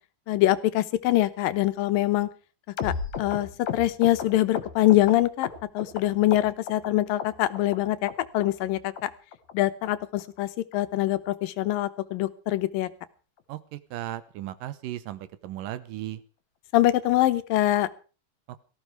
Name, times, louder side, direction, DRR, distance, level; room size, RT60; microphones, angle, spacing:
voice 1, 0.3-2.3 2.8-5.5 5.7-9.1 9.5-12.9 16.7-17.9, left 15 dB, 90° left, 13 dB, 2.7 m, -24 dB
sound 1, 2.8-6.0 6.3-6.9 7.2-7.8 8.1-8.2 8.4-8.7 9.0-9.1 9.3-9.5 9.8-9.9 10.2-10.4 10.7-10.8 11.1-11.3 11.6-11.7 12.0-12.2 12.5-12.6, left 7 dB, 60° left, 2.8 m, -34 dB
voice 2, 13.5-16.2 18.5-18.6, right 13 dB, 80° right, 14 dB, 2.7 m, -36 dB
18.0 x 14.5 x 4.8 m, 0.37 s
omnidirectional pair, 3.9 m